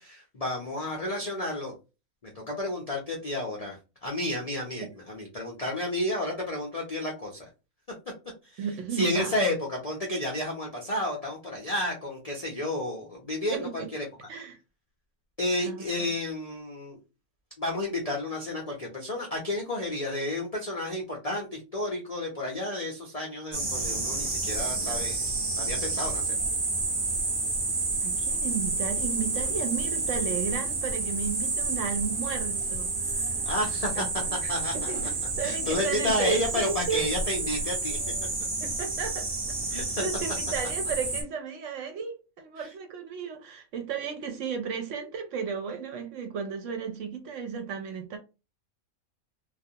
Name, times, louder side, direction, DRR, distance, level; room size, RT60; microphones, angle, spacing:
voice 1, 0.0-1.7 2.2-3.8 4.0-7.5 8.5-8.6 8.9-14.1 15.4-17.0 17.6-25.3 25.6-26.3 33.4-34.1 34.3-34.9 35.4-38.0 39.7-40.0 42.6-42.7, left 1 dB, 55° left, 0.4 m, -31 dB
voice 2, 8.6-9.3 13.5-13.9 14.3-14.6 15.6-16.1 28.0-33.5 33.9-34.1 34.4-37.1 38.6-39.3 39.7-48.2, right 6 dB, 70° right, 0.8 m, -34 dB
sound 1, 23.5-41.2, right 3 dB, 45° right, 0.8 m, -30 dB
2.3 x 2.3 x 2.7 m
omnidirectional pair, 1.5 m